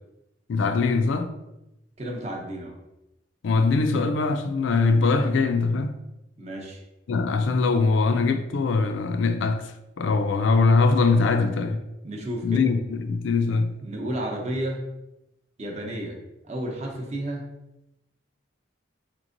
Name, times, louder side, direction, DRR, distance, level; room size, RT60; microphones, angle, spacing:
voice 1, 0.5-1.3 3.4-6.0 7.1-11.8 12.4-13.8, left 4 dB, 75° left, 0.4 m, -22 dB
voice 2, 2.0-2.7 6.4-6.8 12.0-12.7 13.8-14.8 15.6-16.2 16.4-17.5, right 1 dB, 35° right, 0.7 m, -32 dB
4.3 x 2.9 x 2.6 m
head